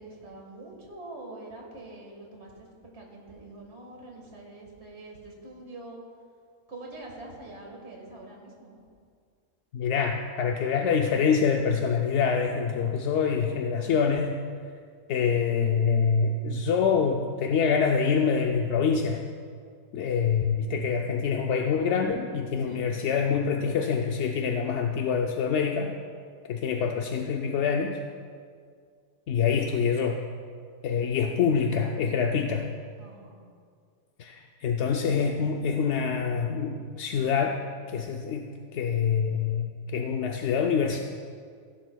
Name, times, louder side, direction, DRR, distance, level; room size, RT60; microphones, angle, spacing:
voice 1, 0.0-6.0 6.7-8.8 22.6-23.0 29.5-29.7 31.2-31.3 33.0-33.4, right 2 dB, 45° right, 0 dB, 1.9 m, -45 dB
voice 2, 9.7-14.3 15.1-19.3 19.9-25.9 26.5-28.0 29.3-30.2 30.8-32.7 34.2-37.6 37.9-38.5 38.7-41.0, left 6 dB, 65° left, 3 dB, 0.7 m, -25 dB
16.5 x 10.5 x 2.3 m, 2.1 s
omnidirectional pair, 1.5 m